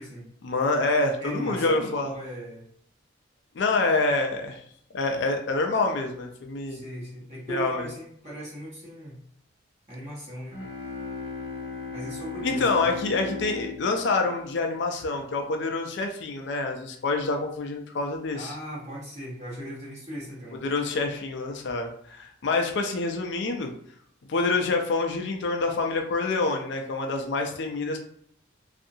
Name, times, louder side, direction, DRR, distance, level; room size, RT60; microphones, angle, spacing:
voice 1, 0.4-2.1 3.6-4.6 4.9-6.8 7.5-7.9 12.4-18.5 20.6-23.7 24.3-28.0, left 3 dB, 55° left, 3 dB, 0.4 m, -27 dB
voice 2, 1.2-2.6 6.7-9.2 9.9-10.6 11.9-12.9 18.3-20.6, right 1 dB, 35° right, -7 dB, 1.1 m, -38 dB
sound 1, 10.5-15.2, left 4 dB, 75° left, 0.8 m, -37 dB
2.6 x 2.4 x 2.6 m, 0.65 s
head